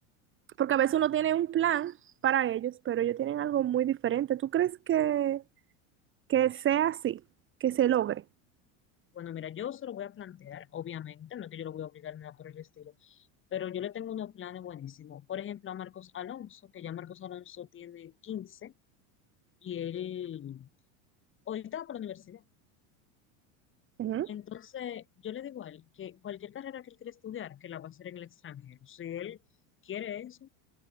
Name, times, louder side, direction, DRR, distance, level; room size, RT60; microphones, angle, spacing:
voice 1, 0.6-1.9 2.2-5.4 6.3-7.2 7.6-8.2 24.0-24.3, right 11 dB, 30° right, 1.9 m, -27 dB
voice 2, 9.1-18.7 19.6-20.7 21.5-22.4 24.3-29.4 29.8-30.5, left 10 dB, 30° left, 6.1 m, -40 dB
supercardioid pair, 150°, 42 cm